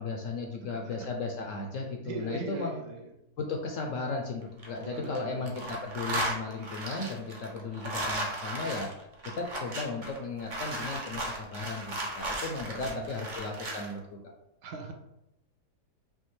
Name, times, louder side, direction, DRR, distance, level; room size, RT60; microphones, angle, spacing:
voice 1, 0.0-2.8 3.4-8.9 9.4-14.2, left 3 dB, 70° left, 2 dB, 0.8 m, -35 dB
voice 2, 0.6-1.1 2.0-3.1 4.8-5.7 12.8-13.1 13.4-13.6 14.6-14.9, right 4 dB, 75° right, 3 dB, 1.2 m, -41 dB
sound 1, 4.4-5.2 5.5-13.9, right 1 dB, 45° right, 0.6 m, -36 dB
5.6 x 2.4 x 3.1 m, 0.87 s
omnidirectional pair, 1.7 m